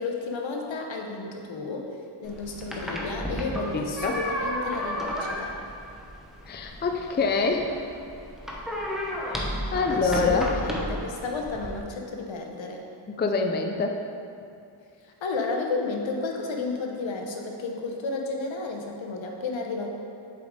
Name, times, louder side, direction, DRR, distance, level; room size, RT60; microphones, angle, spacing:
voice 1, 0.0-5.5 9.7-12.8 15.2-19.9, left 3 dB, 65° left, 2 dB, 1.0 m, -32 dB
sound 1, 2.2-11.8, equal, ahead, 1.0 m, -33 dB
voice 2, 3.7-4.2 6.5-7.8 9.3-10.5 13.1-14.0, left 4 dB, 20° left, 3 dB, 0.5 m, -26 dB
7.6 x 5.1 x 3.7 m, 2.5 s
cardioid pair, 70°, 48 cm